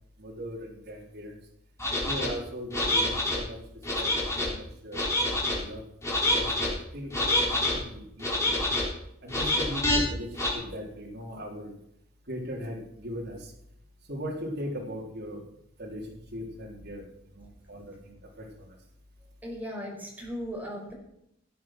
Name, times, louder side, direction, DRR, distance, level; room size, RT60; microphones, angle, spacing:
voice 1, 0.2-1.4 2.0-3.6 4.0-5.8 6.2-8.7 9.2-11.7 12.3-13.5 14.1-15.5 15.8-18.8, equal, 55° right, -2 dB, 3.7 m, -39 dB
sound 1, 1.8-2.3 2.7-3.4 3.8-4.5 4.9-5.6 6.0-6.7 7.1-7.7 8.2-8.8 9.3-10.0 10.3-10.5, left 1 dB, 15° left, 4.8 m, -26 dB
voice 2, 19.4-20.9, equal, 10° right, -2 dB, 5.1 m, -37 dB
16.5 x 9.8 x 6.2 m, 0.77 s
head